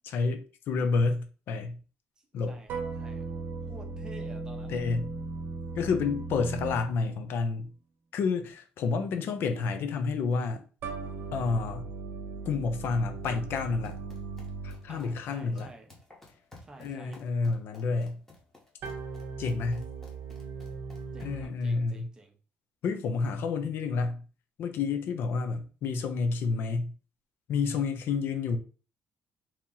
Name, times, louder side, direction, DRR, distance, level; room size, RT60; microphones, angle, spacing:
voice 1, 0.0-1.8 2.3-2.6 4.7-5.1 5.8-7.7 8.1-10.6 11.3-11.8 12.5-14.0 14.6-15.7 16.8-18.2 19.4-19.8 21.2-22.1 22.8-24.2 24.6-26.9 27.5-28.6, left 4 dB, 60° left, 0.5 m, -29 dB
voice 2, 2.2-3.2 3.7-4.8 14.9-15.9 16.6-17.2 21.1-22.4, right 2 dB, 15° right, 0.6 m, -50 dB
sound 1, 2.7-7.3 10.8-15.1 18.8-21.5, right 4 dB, 60° right, 0.8 m, -38 dB
sound 2, 13.1-21.5, left 2 dB, 10° left, 0.9 m, -56 dB
2.9 x 2.9 x 3.7 m
cardioid pair, 170°, 4 cm